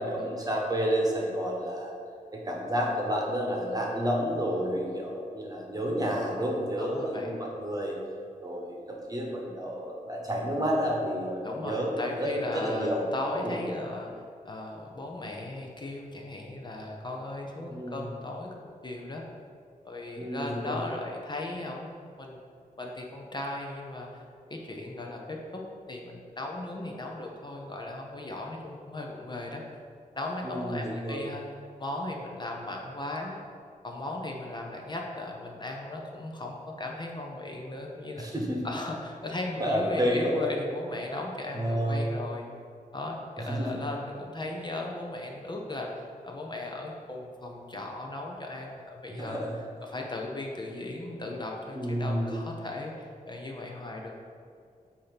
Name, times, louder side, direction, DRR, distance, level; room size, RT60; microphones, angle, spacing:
voice 1, 0.0-1.9 2.3-8.0 8.4-13.0 13.3-13.6 17.6-18.1 20.2-20.8 30.4-31.2 38.2-38.7 39.6-40.3 41.5-42.0 43.5-43.8 49.2-49.5 51.7-52.3, equal, 25° right, -1 dB, 1.2 m, -30 dB
voice 2, 6.8-7.3 11.4-14.1 14.4-18.5 18.8-19.2 19.8-22.4 22.8-24.2 24.5-25.6 25.9-29.6 30.1-31.4 31.8-33.4 33.8-38.2 38.6-42.5 42.9-49.5 49.8-54.1, left 2 dB, 30° left, 0 dB, 0.7 m, -37 dB
8.4 x 2.9 x 5.8 m, 2.4 s
wide cardioid pair, 120°, 15 cm